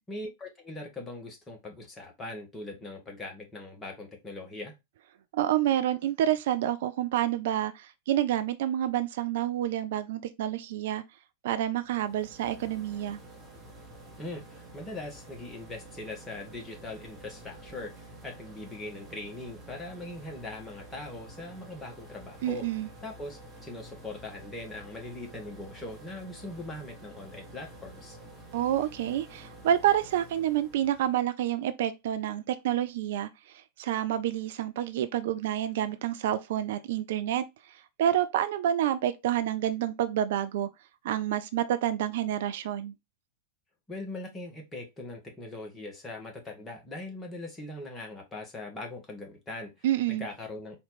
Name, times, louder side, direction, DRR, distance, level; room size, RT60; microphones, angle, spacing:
voice 1, 0.1-4.7 14.2-22.6 23.0-28.2 43.9-50.8, left 2 dB, 15° left, 1.6 m, -41 dB
voice 2, 5.3-11.0 11.4-13.2 22.4-22.9 28.5-40.7 41.0-42.9 49.8-50.3, right 11 dB, 55° right, 0.4 m, -28 dB
sound 1, 11.8-31.2, right 1 dB, 15° right, 1.4 m, -49 dB
4.3 x 2.8 x 4.0 m
figure-of-eight pair, 90°, 0 cm